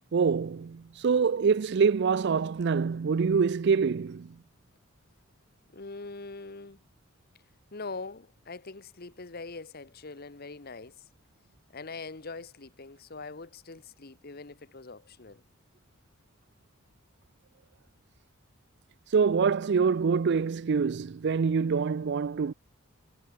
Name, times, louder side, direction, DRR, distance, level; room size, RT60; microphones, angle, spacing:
voice 1, 0.1-4.3 19.1-22.5, right 5 dB, 55° right, 0.4 m, -25 dB
voice 2, 5.7-6.8 7.7-11.0 11.7-15.4, left 3 dB, 45° left, 1.1 m, -42 dB
head